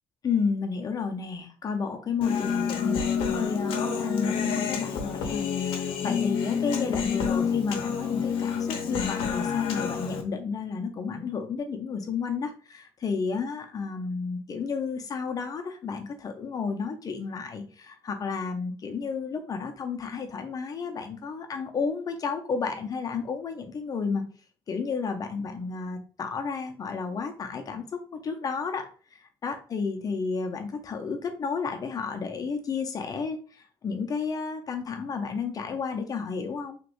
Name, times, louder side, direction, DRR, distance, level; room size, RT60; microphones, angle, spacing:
voice 1, 0.2-24.2 24.7-28.9 29.4-33.4 33.8-36.8, left 5 dB, 40° left, 5 dB, 0.8 m, -32 dB
Human voice, 2.2-10.2, left 6 dB, 80° left, 0.8 m, -28 dB
3.3 x 3.1 x 3.1 m, 0.38 s
cardioid pair, 90°, 9 cm